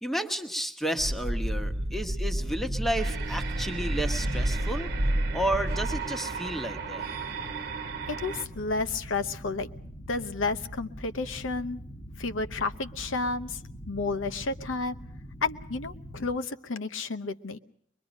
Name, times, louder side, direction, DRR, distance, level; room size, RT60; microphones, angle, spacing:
voice 1, 0.0-4.9 5.3-7.0, right 1 dB, ahead, 6 dB, 1.1 m, -32 dB
sound 1, 1.0-6.0, right 1 dB, 35° right, 0.8 m, -30 dB
sound 2, 2.4-16.4, equal, 25° left, 1.3 m, -43 dB
sound 3, 3.0-8.5, right 7 dB, 55° right, 1.1 m, -37 dB
voice 2, 8.1-9.7 10.1-11.8 12.2-13.6 13.9-15.0 15.4-17.6, left 3 dB, 85° left, 10 dB, 0.9 m, -31 dB
23.5 x 22.0 x 5.2 m, 0.66 s
head